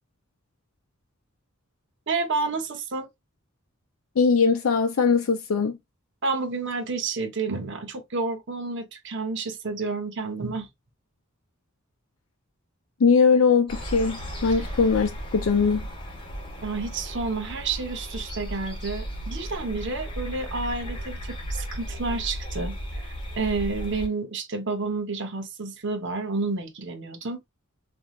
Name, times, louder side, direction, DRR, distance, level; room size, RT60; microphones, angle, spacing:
voice 1, 2.1-3.1 6.2-10.7 16.6-27.5, right 3 dB, 60° right, 0.9 m, -30 dB
voice 2, 4.2-5.8 13.0-15.9, left 5 dB, 75° left, 0.5 m, -21 dB
sound 1, 13.7-24.1, equal, 25° left, 1.4 m, -35 dB
3.3 x 3.1 x 2.3 m
head